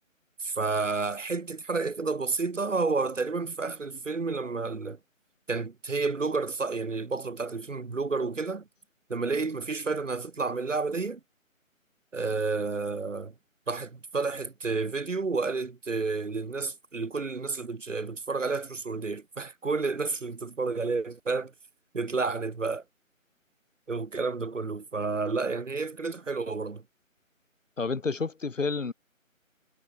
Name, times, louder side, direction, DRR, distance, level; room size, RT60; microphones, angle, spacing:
voice 1, 0.4-5.0 5.5-8.6 9.1-11.2 12.1-13.3 13.7-21.5 21.9-22.8 23.9-26.8, right 4 dB, 65° right, 2.8 m, -30 dB
voice 2, 27.8-28.9, left 4 dB, 65° left, 2.1 m, -29 dB
figure-of-eight pair, 165°, 41 cm